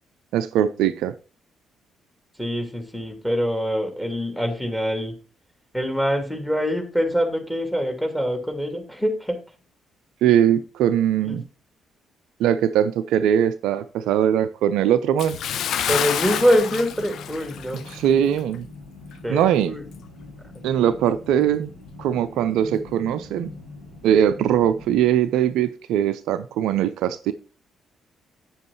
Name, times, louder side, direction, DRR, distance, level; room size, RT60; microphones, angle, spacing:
voice 1, 0.3-1.1 10.2-11.4 12.4-15.4 17.9-18.7 19.3-19.8 20.6-21.7 22.0-23.5 24.0-27.3, right 10 dB, 65° right, 0.4 m, -21 dB
voice 2, 2.4-5.1 5.7-9.4 11.2-11.4 15.9-17.8 19.2-19.8, equal, 5° left, 2.8 m, -24 dB
Bathtub (filling or washing) / Splash splatter, 15.2-18.1 18.4-18.6 19.1-19.2, left 9 dB, 55° left, 0.5 m, -28 dB
sound 1, 16.1-25.1, left 3 dB, 80° left, 4.7 m, -42 dB
8.6 x 7.4 x 4.4 m
figure-of-eight pair, 45°, 0 cm